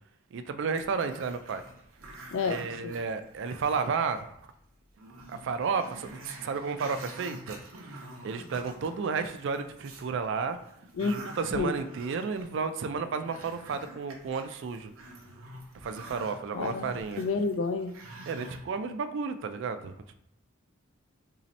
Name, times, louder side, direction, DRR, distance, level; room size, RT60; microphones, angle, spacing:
voice 1, 0.3-1.6 2.4-4.2 5.3-7.6 8.2-10.6 11.0-14.9 15.8-17.2 18.3-20.1, right 5 dB, 60° right, 9 dB, 0.3 m, -32 dB
Growling, 0.7-4.2 4.6-4.7 5.0-10.1 10.5-18.6, right 2 dB, 85° right, 0.8 m, -47 dB
voice 2, 2.3-3.0 10.9-11.2 11.5-11.7 16.5-16.9 17.2-17.9, left 4 dB, 65° left, 9 dB, 0.4 m, -29 dB
3.0 x 2.7 x 4.0 m, 0.77 s
head